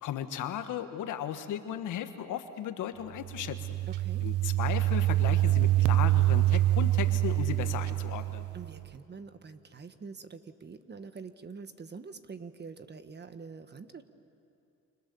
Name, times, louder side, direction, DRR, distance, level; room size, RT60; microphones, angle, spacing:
voice 1, 0.0-3.7 4.2-8.4, left 10 dB, 85° left, 8 dB, 1.6 m, -36 dB
sound 1, 3.2-8.9, right 15 dB, 80° right, 0.6 m, -26 dB
voice 2, 3.9-4.2 8.5-14.0, right 5 dB, 35° right, 10 dB, 1.4 m, -45 dB
29.0 x 26.5 x 7.1 m, 2.7 s
cardioid pair, 90°, 30 cm